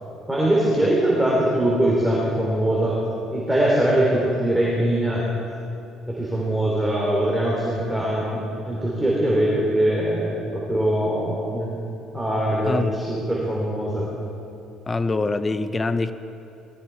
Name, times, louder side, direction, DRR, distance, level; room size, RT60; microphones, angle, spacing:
voice 1, 0.3-3.0 3.3-5.2 6.1-11.7 12.1-14.1, right 1 dB, 5° right, -5 dB, 3.2 m, -22 dB
voice 2, 12.7-13.0 14.9-16.1, left 3 dB, 20° left, 11 dB, 0.8 m, -24 dB
19.0 x 14.0 x 4.6 m, 2.7 s
cardioid pair, 105°, 0 cm